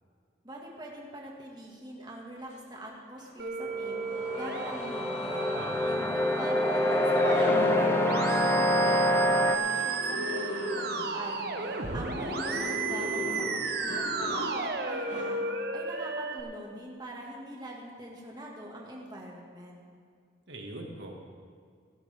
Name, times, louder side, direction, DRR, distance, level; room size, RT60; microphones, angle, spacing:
voice 1, 0.4-5.5 5.8-15.4 15.7-19.8, right 1 dB, 20° right, -2 dB, 1.9 m, -43 dB
sound 1, 3.2-3.3 3.9-15.9, left 1 dB, 85° left, 3.1 m, -39 dB
Musical instrument, 3.4-16.4, right 4 dB, 55° right, 0.9 m, -34 dB
sound 2, 3.6-9.6, left 1 dB, 10° left, 0.5 m, -26 dB
voice 2, 5.5-5.9 20.5-21.1, right 2 dB, 80° right, 1 dB, 1.8 m, -41 dB
16.5 x 12.0 x 3.5 m, 2.1 s
head